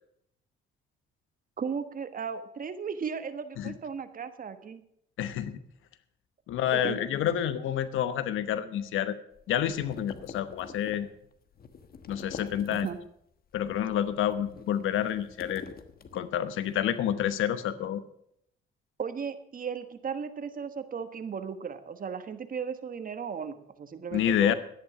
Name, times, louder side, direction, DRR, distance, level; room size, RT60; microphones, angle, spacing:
voice 1, 1.6-4.8 6.7-7.0 12.7-13.0 19.0-24.5, right 6 dB, 45° right, 10 dB, 1.3 m, -36 dB
voice 2, 5.2-5.6 6.5-9.2 9.5-11.1 12.1-12.9 13.5-15.6 16.1-18.0 24.1-24.5, left 10 dB, 85° left, 13 dB, 1.0 m, -28 dB
sound 1, 9.3-13.2 13.5-16.6, left 6 dB, 50° left, 1.3 m, -46 dB
11.5 x 10.5 x 5.9 m, 0.72 s
cardioid pair, 90°, 20 cm